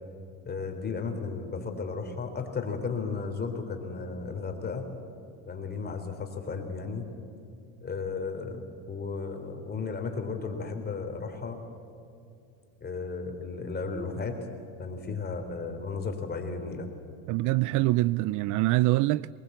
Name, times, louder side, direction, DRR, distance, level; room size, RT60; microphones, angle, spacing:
voice 1, 0.5-4.8 5.5-7.1 7.8-11.6 12.8-14.4 14.8-16.9, left 4 dB, 25° left, 3.4 m, -34 dB
voice 2, 17.3-19.3, right 19 dB, 55° right, 0.4 m, -24 dB
23.5 x 20.0 x 8.0 m
supercardioid pair, 115°, 38 cm